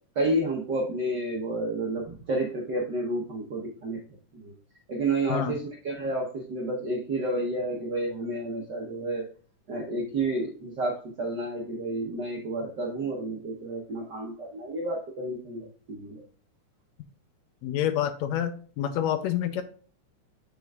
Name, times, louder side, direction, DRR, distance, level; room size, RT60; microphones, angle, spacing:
voice 1, 0.1-4.0 4.3-4.5 4.9-9.3 9.7-16.2, right 2 dB, 65° right, 0 dB, 1.0 m, -30 dB
voice 2, 17.6-19.6, left 10 dB, 75° left, 10 dB, 1.8 m, -28 dB
6.8 x 6.5 x 2.4 m, 0.43 s
omnidirectional pair, 3.4 m